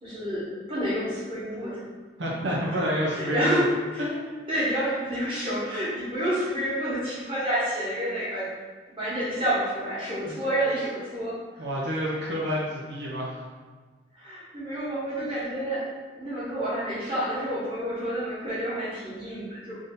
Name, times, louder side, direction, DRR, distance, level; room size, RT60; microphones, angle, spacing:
voice 1, 0.0-1.8 2.5-2.6 3.1-3.6 3.9-4.1 4.5-8.5 9.0-11.7 14.1-15.9 16.1-19.7, right 1 dB, 30° right, -9 dB, 1.5 m, -29 dB
voice 2, 2.2-3.6 4.0-4.3 10.3-10.4 11.6-13.4, equal, 80° right, -4 dB, 0.7 m, -29 dB
3.6 x 2.7 x 3.8 m, 1.4 s
head